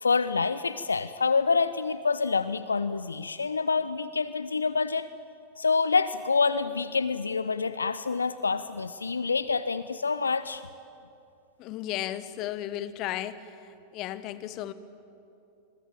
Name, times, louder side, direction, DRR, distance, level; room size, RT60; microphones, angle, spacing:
voice 1, 0.0-5.1 5.6-10.6, left 4 dB, 75° left, 14 dB, 0.6 m, -27 dB
voice 2, 11.6-13.4 13.9-14.7, left 13 dB, 40° left, 14 dB, 1.3 m, -34 dB
27.5 x 22.0 x 8.9 m, 2.7 s
figure-of-eight pair, 90°, 0 cm